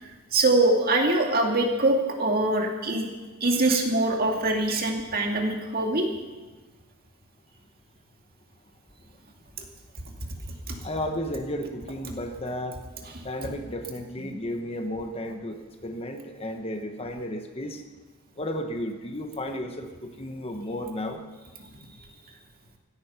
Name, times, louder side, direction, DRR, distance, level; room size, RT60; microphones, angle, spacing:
voice 1, 0.3-3.1 3.4-6.1 10.7-10.8, right 2 dB, 40° right, 2 dB, 2.2 m, -23 dB
voice 2, 10.8-12.7 13.2-17.8 18.4-21.2, left 1 dB, 25° left, 5 dB, 1.1 m, -33 dB
16.0 x 14.0 x 5.8 m, 1.3 s
head